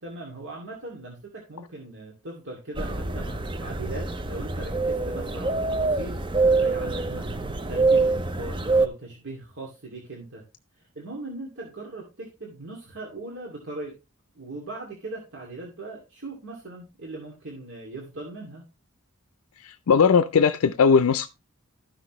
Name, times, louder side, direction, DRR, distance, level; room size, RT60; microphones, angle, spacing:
voice 1, 0.0-6.2 6.5-7.4 7.7-10.4 10.8-13.9 14.3-18.6, right 2 dB, 55° right, 2.3 m, -39 dB
sound 1, 2.8-8.9, right 3 dB, 20° right, 0.6 m, -25 dB
voice 2, 19.6-21.3, left 6 dB, 80° left, 0.4 m, -19 dB
13.0 x 6.0 x 3.1 m
head